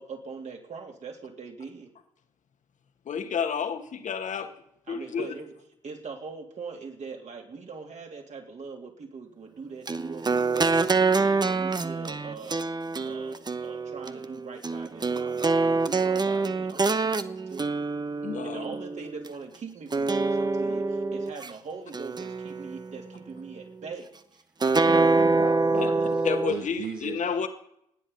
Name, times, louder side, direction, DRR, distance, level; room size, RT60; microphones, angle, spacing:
voice 1, 0.0-1.9 4.9-5.6 5.8-10.8 11.1-12.7 13.0-17.9 18.4-24.1, right 5 dB, 50° right, 3.3 m, -42 dB
voice 2, 3.1-4.5 4.9-5.3 18.2-18.7 25.8-25.9 26.2-27.5, left 6 dB, 50° left, 1.8 m, -30 dB
sound 1, 9.9-19.3 19.9-21.5 21.9-23.1 24.6-26.5, right 3 dB, 25° right, 1.0 m, -26 dB
voice 3, 24.8-26.1 26.5-27.2, right 6 dB, 65° right, 2.2 m, -36 dB
28.5 x 10.0 x 4.1 m
hypercardioid pair, 40°, 16 cm